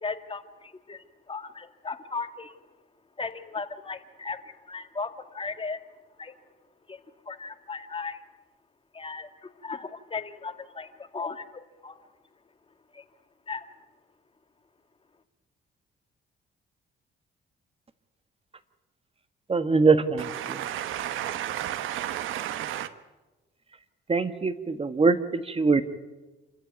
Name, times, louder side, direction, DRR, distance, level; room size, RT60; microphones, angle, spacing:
voice 1, 0.0-2.6 3.2-5.8 6.2-6.3 6.9-7.0 7.3-8.2 8.9-12.1 12.9-13.1 13.5-13.7, left 4 dB, 25° left, 1.9 m, -37 dB
voice 2, 19.5-20.6 24.1-25.8, right 4 dB, 30° right, 1.5 m, -23 dB
voice 3, 20.2-22.9, right 11 dB, 85° right, 1.2 m, -32 dB
28.0 x 14.0 x 9.4 m
cardioid pair, 90°, 20 cm